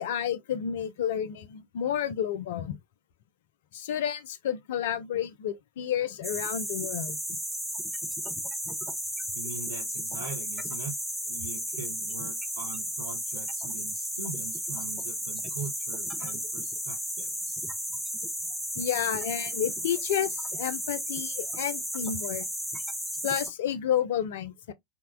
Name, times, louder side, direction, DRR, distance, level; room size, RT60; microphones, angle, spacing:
voice 1, 0.0-2.8 3.7-7.2 18.8-22.5 23.2-24.7, left 9 dB, 55° left, 0.4 m, -30 dB
sound 1, 6.2-23.5, equal, ahead, 0.6 m, -34 dB
voice 2, 9.3-10.9 11.3-17.7, right 4 dB, 75° right, 0.7 m, -42 dB
2.8 x 2.1 x 2.3 m
figure-of-eight pair, 90°, 0 cm